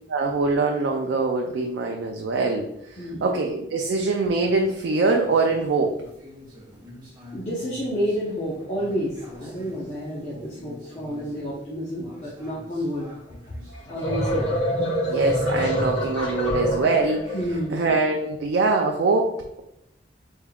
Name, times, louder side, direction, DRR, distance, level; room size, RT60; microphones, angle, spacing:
voice 1, 0.1-6.0 15.1-17.3 17.7-19.6, right 3 dB, 75° right, 2 dB, 0.4 m, -23 dB
voice 2, 3.0-3.3 7.3-13.1 13.5-13.6 13.9-14.5 17.3-17.8, equal, 35° left, -6 dB, 0.7 m, -30 dB
sound 1, 4.3-16.3, left 1 dB, 25° right, 1.3 m, -47 dB
sound 2, 13.7-17.6, equal, 90° left, 1.3 m, -26 dB
3.5 x 3.5 x 2.2 m, 0.82 s
head